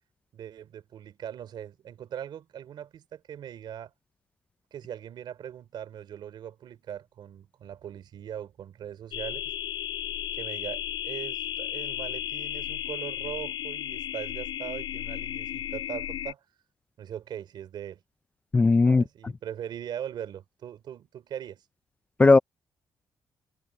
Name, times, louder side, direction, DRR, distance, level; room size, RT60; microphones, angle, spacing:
voice 1, 0.3-3.9 4.7-9.5 10.3-16.4 17.0-18.0 18.8-21.6, right 9 dB, 65° right, 3.9 m, -40 dB
sound 1, 9.1-16.3, left 11 dB, 70° left, 3.3 m, -34 dB
voice 2, 18.5-19.0 22.2-22.4, left 3 dB, 15° left, 0.3 m, -17 dB
cardioid pair, 160°, 8 cm